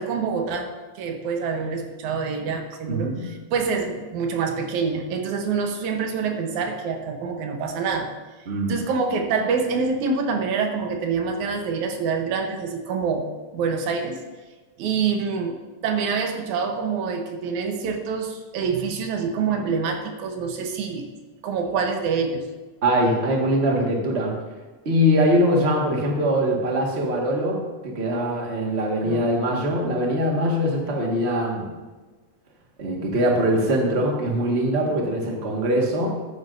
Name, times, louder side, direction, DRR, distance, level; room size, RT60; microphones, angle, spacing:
voice 1, 0.0-8.1 8.7-14.2 14.8-21.1 21.4-22.5 29.0-29.3, right 5 dB, 85° right, 4 dB, 2.4 m, -26 dB
voice 2, 2.9-3.3 8.4-8.8 22.8-24.3 24.8-31.7 32.8-36.1, equal, 30° right, -1 dB, 1.5 m, -22 dB
14.0 x 10.5 x 2.6 m, 1.3 s
omnidirectional pair, 3.3 m